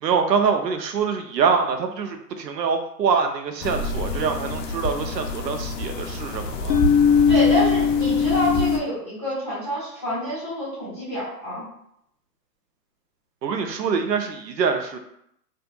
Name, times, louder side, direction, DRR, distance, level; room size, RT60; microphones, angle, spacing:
voice 1, 0.0-6.8 13.4-15.0, right 6 dB, 85° right, 6 dB, 0.6 m, -24 dB
sound 1, 3.6-8.8, left 5 dB, 80° left, 0.5 m, -22 dB
voice 2, 7.3-11.6, left 1 dB, ahead, -32 dB, 0.6 m, -27 dB
2.6 x 2.4 x 2.2 m, 0.74 s
hypercardioid pair, 165°, 49 cm